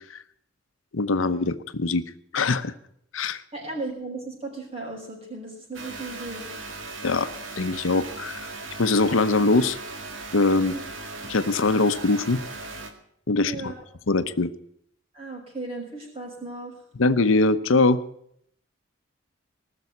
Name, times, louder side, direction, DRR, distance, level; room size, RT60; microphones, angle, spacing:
voice 1, 0.9-2.0 2.3-2.7 3.1-3.4 7.0-7.3 7.6-8.4 8.8-9.8 10.3-10.8 11.2-12.4 13.3-13.7 14.1-14.5 17.0-18.0, left 3 dB, 80° left, 12 dB, 0.8 m, -22 dB
voice 2, 3.5-6.5 10.6-10.8 13.4-13.7 15.1-16.8, right 2 dB, 30° right, -2 dB, 6.0 m, -36 dB
sound 1, 5.7-12.9, right 3 dB, 75° right, 1.9 m, -38 dB
19.5 x 6.9 x 9.5 m, 0.71 s
head